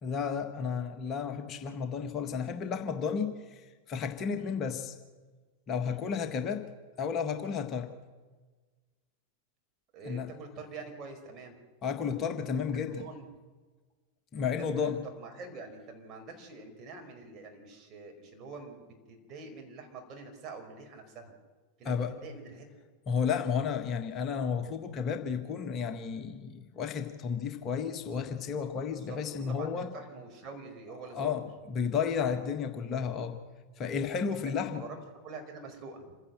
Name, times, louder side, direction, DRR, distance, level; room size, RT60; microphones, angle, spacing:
voice 1, 0.0-4.9 5.7-6.7 7.0-7.9 10.0-10.3 11.8-13.1 14.3-15.0 21.8-22.2 23.1-29.9 31.1-33.4 33.8-34.8, left 6 dB, 30° left, 6 dB, 1.6 m, -32 dB
voice 2, 9.9-11.6 13.0-13.3 14.4-14.5 14.7-21.3 21.8-22.6 28.9-31.4 34.6-35.0 35.2-36.0, right 4 dB, 30° right, 3 dB, 5.0 m, -46 dB
27.0 x 16.0 x 7.6 m, 1.4 s
figure-of-eight pair, 90°, 0 cm